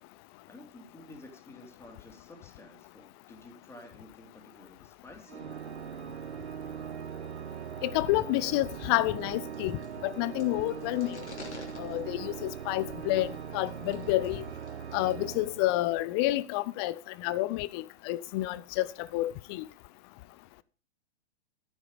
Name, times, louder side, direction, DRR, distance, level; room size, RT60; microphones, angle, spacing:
voice 1, 0.5-5.5, left 2 dB, 5° left, 2.7 m, -51 dB
Organ, 5.3-16.2, right 8 dB, 70° right, 0.9 m, -41 dB
voice 2, 7.8-11.2 11.8-14.4 14.9-19.7, left 17 dB, 25° left, 0.5 m, -29 dB
sound 1, 8.4-15.2, left 3 dB, 85° left, 3.2 m, -52 dB
12.0 x 9.6 x 5.0 m
figure-of-eight pair, 115°, 34 cm